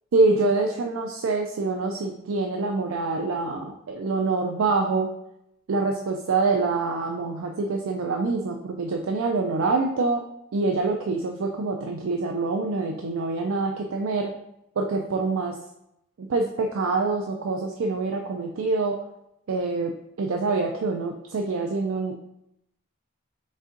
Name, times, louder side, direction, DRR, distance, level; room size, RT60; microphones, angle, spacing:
voice 1, 0.1-5.1 5.7-10.2 10.5-14.3 14.8-15.6 16.2-19.0 19.5-22.1, right 3 dB, 75° right, 2 dB, 0.4 m, -25 dB
4.1 x 3.5 x 3.7 m, 0.80 s
head